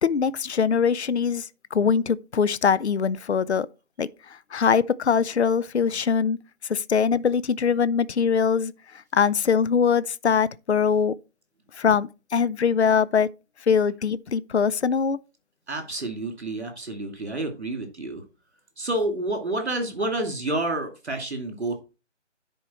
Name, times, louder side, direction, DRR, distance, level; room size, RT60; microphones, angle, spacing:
voice 1, 0.0-3.7 4.0-4.1 4.5-6.4 6.7-8.7 9.1-11.1 11.8-13.3 13.7-15.2, left 6 dB, 60° left, 0.5 m, -22 dB
voice 2, 15.7-18.2 18.8-21.8, right 2 dB, 60° right, 2.7 m, -29 dB
10.0 x 4.6 x 4.4 m
figure-of-eight pair, 180°, 37 cm